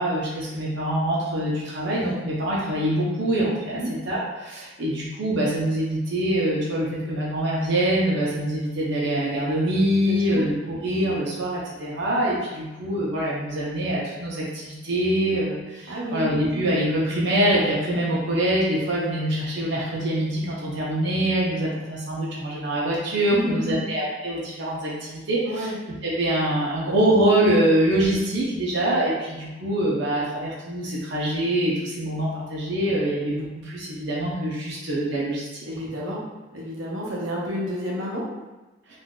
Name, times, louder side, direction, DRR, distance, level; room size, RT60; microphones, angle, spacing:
voice 1, 0.0-25.7 26.0-35.6, right 1 dB, 60° right, -6 dB, 0.6 m, -24 dB
voice 2, 10.1-10.4 15.9-16.3 23.3-23.8 25.5-25.8 35.7-36.2 36.5-38.2, equal, 90° right, -4 dB, 0.8 m, -30 dB
3.7 x 2.5 x 2.3 m, 1.1 s
head